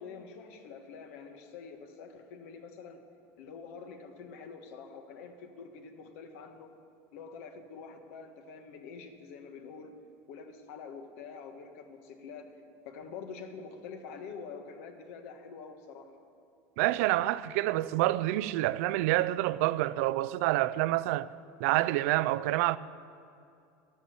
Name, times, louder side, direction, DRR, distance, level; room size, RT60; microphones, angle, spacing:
voice 1, 0.0-3.0 3.4-6.7 7.1-10.0 10.3-12.5 12.8-16.2, left 5 dB, 80° left, 1.5 m, -46 dB
voice 2, 16.8-21.3 21.6-22.8, right 16 dB, 80° right, 0.4 m, -27 dB
11.5 x 11.0 x 8.0 m
supercardioid pair, 145°, 8 cm